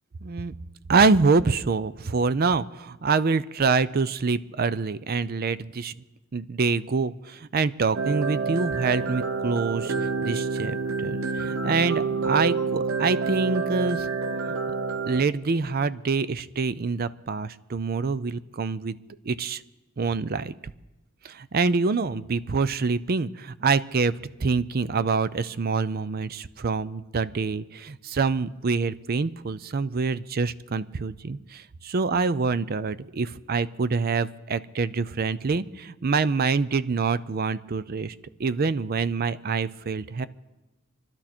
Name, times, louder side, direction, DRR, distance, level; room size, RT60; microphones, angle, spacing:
voice 1, 0.2-0.5 0.9-6.0 6.3-9.9 10.2-10.8 11.0-14.1 14.5-14.6 15.1-19.0 19.2-19.6 20.0-20.5 21.2-24.1 24.4-38.1 38.4-40.3, right 4 dB, 50° right, 15 dB, 0.5 m, -26 dB
sound 1, 7.9-15.2, right 4 dB, 75° right, 0.9 m, -28 dB
26.0 x 12.0 x 4.4 m, 1.0 s
head